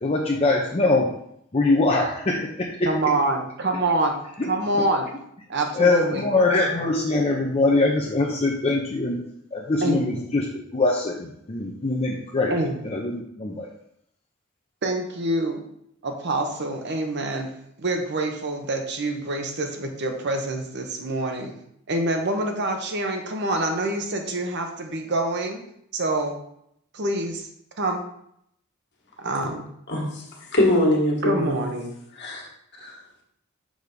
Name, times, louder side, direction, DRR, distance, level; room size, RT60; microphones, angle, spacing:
voice 1, 0.0-1.1 1.5-2.9 4.4-4.5 5.7-9.2 9.5-12.5 12.8-13.7, left 2 dB, 30° left, -1 dB, 0.7 m, -23 dB
voice 2, 2.8-5.1 5.5-6.3 9.8-10.3 12.5-12.8 14.8-15.6 16.0-17.5 17.8-21.5 21.9-25.6 25.9-26.4 26.9-27.5 27.8-28.0 29.2-29.7 31.2-31.9, right 2 dB, 55° right, 4 dB, 0.9 m, -26 dB
voice 3, 29.9-30.2 30.5-31.6 32.2-32.4 32.8-33.0, left 1 dB, 55° left, -1 dB, 1.7 m, -22 dB
6.4 x 3.5 x 5.2 m, 0.73 s
head